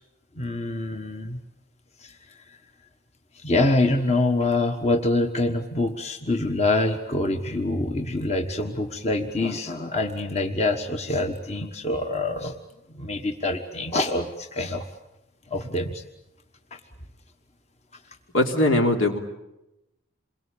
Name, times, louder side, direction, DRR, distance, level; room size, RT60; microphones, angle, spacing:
voice 1, 0.4-1.4 2.0-2.1 3.3-12.5 12.9-14.9 15.5-16.0, left 2 dB, 30° left, 4 dB, 1.4 m, -25 dB
voice 2, 18.3-19.2, left 1 dB, 75° left, 3 dB, 3.3 m, -20 dB
28.0 x 22.5 x 8.7 m, 0.94 s
head